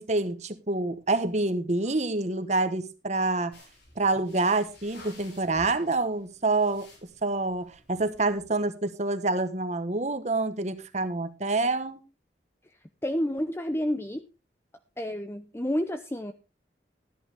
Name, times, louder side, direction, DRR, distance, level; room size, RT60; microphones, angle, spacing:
voice 1, 0.0-3.5 4.0-6.9 7.2-12.0, right 2 dB, 40° right, 1.2 m, -27 dB
sound 1, 3.5-8.6, left 1 dB, 70° left, 6.6 m, -53 dB
voice 2, 13.0-14.2 15.0-16.3, equal, 15° left, 0.6 m, -29 dB
13.5 x 11.0 x 3.5 m
head